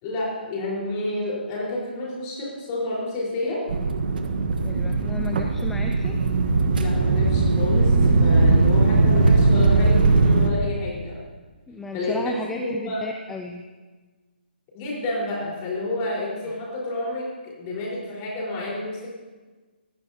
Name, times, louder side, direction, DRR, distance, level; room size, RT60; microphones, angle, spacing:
voice 1, 0.0-3.6 6.7-11.2 11.9-13.1 14.7-19.1, left 2 dB, 20° left, -4 dB, 4.4 m, -30 dB
sound 1, 3.7-10.5, right 3 dB, 55° right, 1.3 m, -19 dB
voice 2, 4.6-6.2 11.7-13.6, left 3 dB, 5° left, 4 dB, 0.4 m, -34 dB
18.5 x 15.0 x 2.8 m, 1.3 s
hypercardioid pair, 165°, 6 cm